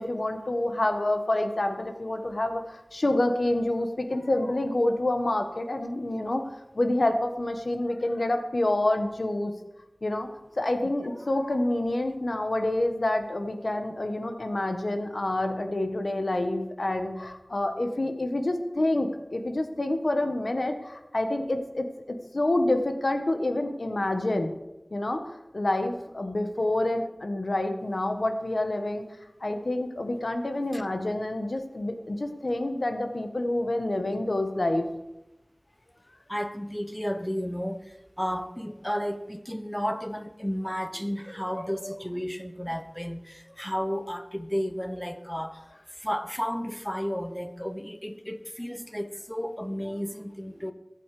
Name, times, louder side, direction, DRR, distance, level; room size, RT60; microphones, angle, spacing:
voice 1, 0.0-9.5 10.0-10.3 10.6-24.5 24.9-29.0 29.4-34.9, left 1 dB, 80° left, 1.6 m, -28 dB
voice 2, 36.3-50.7, equal, 10° left, 1.0 m, -33 dB
22.0 x 8.5 x 5.0 m
wide cardioid pair, 45°, 0 cm